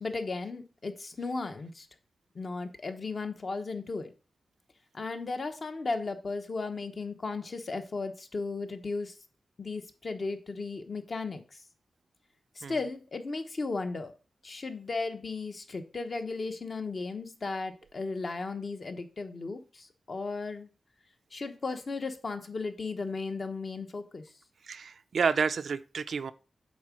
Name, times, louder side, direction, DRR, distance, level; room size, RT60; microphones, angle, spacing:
voice 1, 0.0-1.9 2.3-4.1 4.9-9.1 9.6-11.6 12.6-14.1 14.4-20.7 21.3-24.2, left 3 dB, 40° left, 1.0 m, -35 dB
voice 2, 24.7-26.3, right 5 dB, 65° right, 0.4 m, -30 dB
8.6 x 3.8 x 6.2 m
wide cardioid pair, 155°, 0 cm